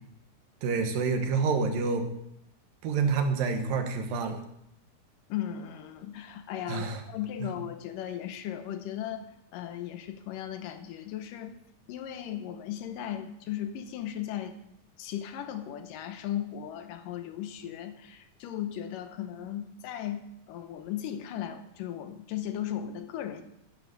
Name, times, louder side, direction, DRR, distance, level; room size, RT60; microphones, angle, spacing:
voice 1, 0.6-2.0 2.8-4.4 6.7-7.0, right 4 dB, 80° right, 6 dB, 3.0 m, -27 dB
voice 2, 5.3-11.6 11.9-14.6 15.0-20.2 20.5-23.4, left 10 dB, 80° left, 8 dB, 2.5 m, -36 dB
11.5 x 9.8 x 6.6 m, 0.80 s
omnidirectional pair, 4.0 m